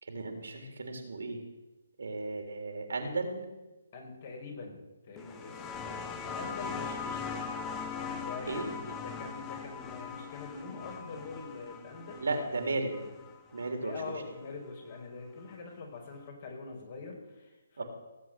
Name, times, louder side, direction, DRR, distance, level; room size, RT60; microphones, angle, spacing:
voice 1, 0.0-1.4 2.0-3.4 8.5-9.0 12.2-13.0 13.5-13.9 17.8-17.9, right 3 dB, 75° right, 4 dB, 3.6 m, -35 dB
voice 2, 3.9-4.8 5.0-7.4 7.9-12.3 13.8-17.8, left 4 dB, 45° left, 2 dB, 4.9 m, -44 dB
sound 1, 5.2-14.4 15.6-15.7, left 5 dB, 15° left, 1.4 m, -40 dB
18.0 x 8.0 x 7.7 m, 1.1 s
hypercardioid pair, 150°, 0 cm